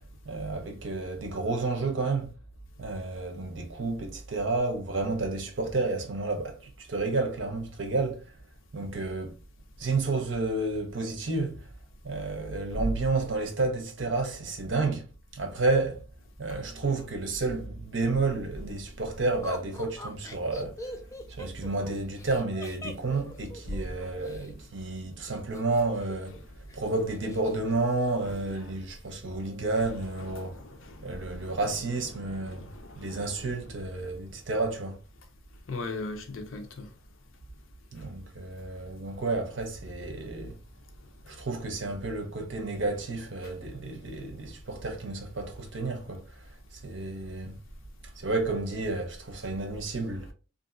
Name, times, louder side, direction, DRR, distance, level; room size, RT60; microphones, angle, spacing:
voice 1, 0.2-2.3 2.8-8.3 8.7-9.4 9.8-11.6 12.0-15.0 15.3-16.0 16.4-21.0 21.3-26.4 26.7-30.5 31.0-32.7 33.0-35.0 37.9-40.5 41.3-46.2 46.8-47.5 48.2-50.3, right 3 dB, 65° right, 0.8 m, -31 dB
Laughter, 19.4-24.5 25.5-26.4 26.7-26.8 27.1-27.6, left 1 dB, 15° left, 0.3 m, -42 dB
voice 2, 30.2-31.6 32.2-33.5 35.7-36.9, left 2 dB, 80° left, 0.6 m, -40 dB
2.7 x 2.5 x 2.5 m
head